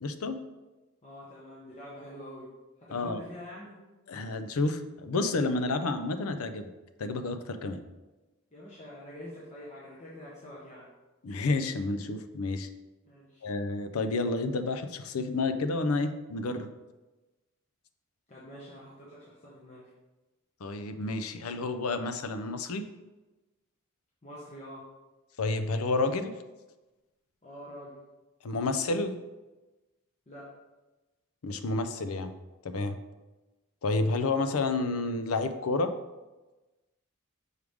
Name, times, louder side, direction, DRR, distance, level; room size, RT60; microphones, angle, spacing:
voice 1, 0.0-0.4 2.9-3.2 4.1-6.7 7.0-7.8 11.2-12.7 13.4-16.7 20.6-22.8 25.4-26.3 28.4-29.1 31.4-32.3 32.6-33.0 33.8-35.9, left 3 dB, 85° left, 9 dB, 0.5 m, -30 dB
voice 2, 1.0-2.5 2.8-3.8 8.5-10.9 13.0-13.5 18.3-19.9 24.2-24.9 27.4-28.0 30.3-30.6, equal, 30° left, -6 dB, 1.0 m, -46 dB
6.4 x 4.8 x 3.5 m, 1.1 s
head